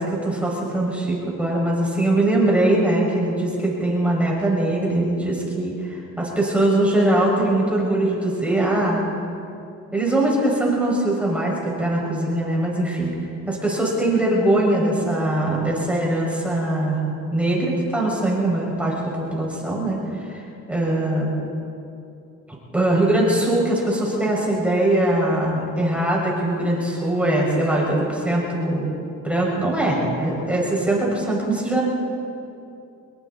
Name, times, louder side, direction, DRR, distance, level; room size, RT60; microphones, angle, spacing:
voice 1, 0.0-9.0 9.9-13.1 13.5-17.0 17.3-20.4 20.7-21.3 22.7-28.9 29.2-31.9, right 1 dB, 5° right, -4 dB, 6.7 m, -21 dB
26.0 x 22.5 x 4.5 m, 2.6 s
cardioid pair, 90°, 30 cm